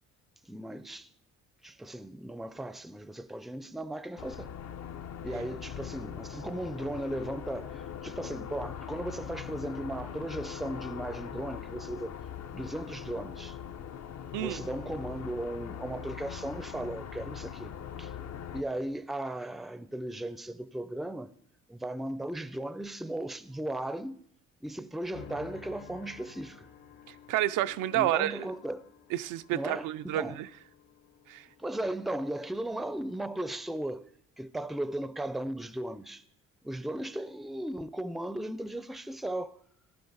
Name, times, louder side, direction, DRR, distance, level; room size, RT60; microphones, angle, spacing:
voice 1, 0.4-1.1 1.6-4.5 5.2-12.1 12.5-13.6 14.3-18.1 18.5-21.3 21.7-24.2 24.6-26.7 27.9-28.9 29.5-30.4 31.6-34.1 34.4-36.2 36.6-39.6, right 1 dB, ahead, 0.4 m, -36 dB
sound 1, 4.2-18.6, left 9 dB, 60° left, 0.7 m, -41 dB
sound 2, 25.1-33.5, left 7 dB, 75° left, 2.3 m, -53 dB
voice 2, 27.1-28.5 29.1-30.5 31.3-31.5, right 14 dB, 90° right, 0.5 m, -30 dB
15.0 x 11.0 x 4.0 m
cardioid pair, 90°, 30 cm